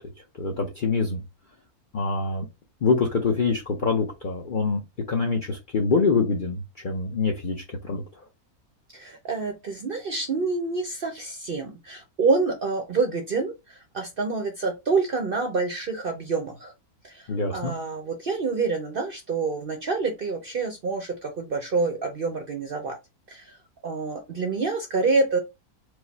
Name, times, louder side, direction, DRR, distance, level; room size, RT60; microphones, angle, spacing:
voice 1, 0.4-1.2 1.9-2.5 2.8-4.8 5.1-8.0 17.3-17.7, left 4 dB, 50° left, 1 dB, 0.6 m, -25 dB
voice 2, 8.9-16.7 17.0-23.0 23.3-23.6 23.8-25.4, right 4 dB, 50° right, 5 dB, 0.6 m, -27 dB
4.7 x 2.1 x 3.9 m, 0.23 s
omnidirectional pair, 1.6 m